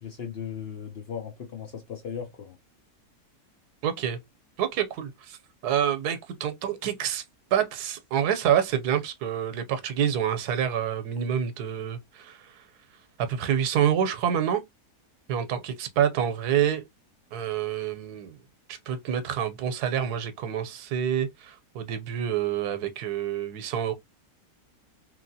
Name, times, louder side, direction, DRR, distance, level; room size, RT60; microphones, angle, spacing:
voice 1, 0.0-2.6, left 7 dB, 60° left, 0.7 m, -37 dB
voice 2, 3.8-4.2 4.6-5.4 5.6-7.2 7.5-12.6 13.2-14.6 15.3-16.8 17.3-18.4 18.7-23.9, right 9 dB, 90° right, 1.2 m, -27 dB
3.0 x 2.7 x 2.6 m
omnidirectional pair, 1.6 m